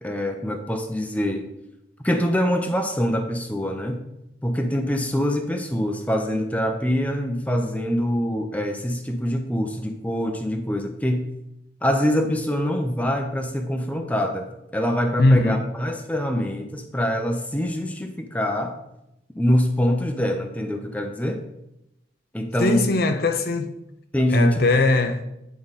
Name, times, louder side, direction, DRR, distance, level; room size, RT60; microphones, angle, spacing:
voice 1, 0.0-1.5 2.0-4.0 4.4-11.3 11.8-18.8 19.4-21.4 22.3-22.9 24.1-24.6, equal, 10° left, 0.7 m, -24 dB
voice 2, 15.2-15.6 22.6-23.8 24.3-25.3, left 2 dB, 55° left, 0.6 m, -20 dB
9.2 x 5.1 x 4.1 m
head